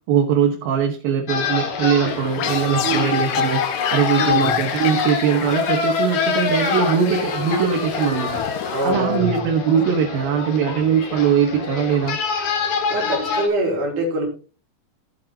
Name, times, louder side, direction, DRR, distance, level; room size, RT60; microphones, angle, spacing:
voice 1, 0.1-3.6 3.9-8.4 8.8-12.2, right 7 dB, 75° right, 1 dB, 3.0 m, -21 dB
sound 1, 1.3-13.5, left 6 dB, 60° left, 2.9 m, -25 dB
sound 2, 2.1-9.4, left 12 dB, 90° left, 1.7 m, -32 dB
voice 2, 2.8-3.3 4.2-4.6 8.7-9.4 12.9-14.3, right 1 dB, 60° right, 0 dB, 4.2 m, -24 dB
16.0 x 7.5 x 2.8 m, 0.36 s
omnidirectional pair, 4.2 m